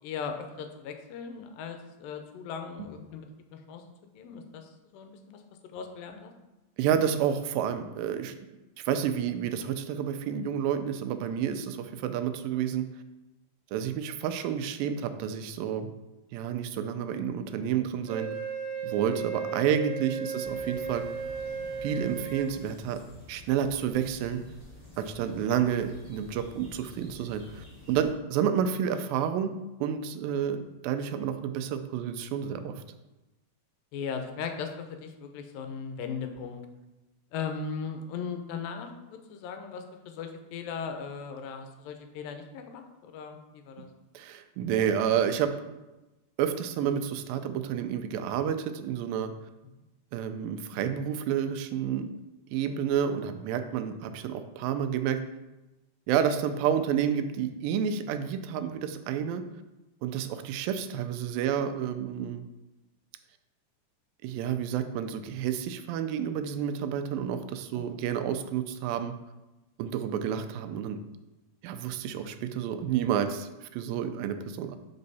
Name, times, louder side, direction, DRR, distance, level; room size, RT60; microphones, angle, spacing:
voice 1, 0.0-3.3 3.5-3.8 4.1-5.4 5.7-6.3 33.9-36.7 37.3-43.9 67.7-67.9 72.1-72.2, left 6 dB, 85° left, 5 dB, 2.4 m, -38 dB
voice 2, 6.8-8.3 8.9-12.9 13.7-15.9 16.3-18.3 18.8-21.0 21.8-23.0 23.3-24.4 25.0-29.5 29.8-32.8 44.1-45.5 46.4-49.3 50.1-52.1 52.5-55.2 56.1-59.4 60.0-62.4 64.2-69.1 69.8-71.0 71.6-74.8, right 8 dB, 90° right, 9 dB, 2.3 m, -30 dB
Wind instrument woodwind instrument, 18.1-22.5, right 6 dB, 65° right, 1.8 m, -35 dB
sound 1, 20.4-28.1, left 2 dB, 5° left, 1.2 m, -49 dB
5.6 x 5.3 x 4.0 m, 1.0 s
omnidirectional pair, 4.0 m